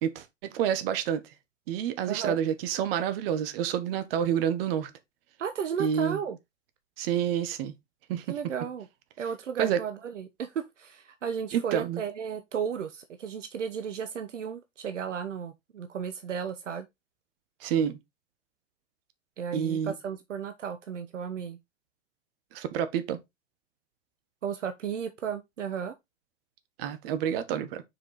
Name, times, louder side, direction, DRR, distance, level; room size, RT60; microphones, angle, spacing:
voice 1, 0.0-1.2 1.7-4.9 5.8-6.2 7.0-7.7 8.1-8.2 9.6-9.8 11.5-12.0 17.6-18.0 19.5-19.9 22.5-23.2 26.8-27.8, right 9 dB, 50° right, 1.3 m, -28 dB
voice 2, 2.1-2.4 5.4-6.4 8.3-8.9 9.2-16.9 19.4-21.6 24.4-25.9, right 7 dB, 70° right, 1.0 m, -34 dB
6.5 x 4.9 x 4.0 m
figure-of-eight pair, 95°, 37 cm